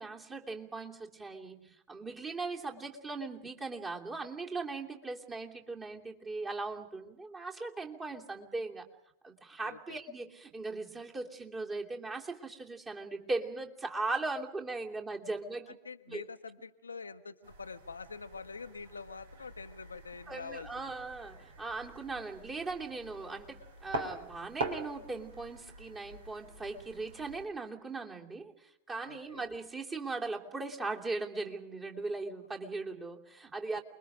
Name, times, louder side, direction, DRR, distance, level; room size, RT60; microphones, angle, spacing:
voice 1, 0.0-8.9 9.2-15.7 16.1-16.2 20.3-33.8, right 3 dB, 20° right, 0 dB, 3.0 m, -39 dB
voice 2, 9.6-10.0 15.7-20.9 29.1-29.5 33.7-33.8, left 4 dB, 75° left, 8 dB, 1.0 m, -46 dB
sound 1, 17.4-27.5, right 1 dB, 65° right, 3.4 m, -44 dB
29.0 x 22.0 x 5.1 m, 0.84 s
figure-of-eight pair, 90°, 0 cm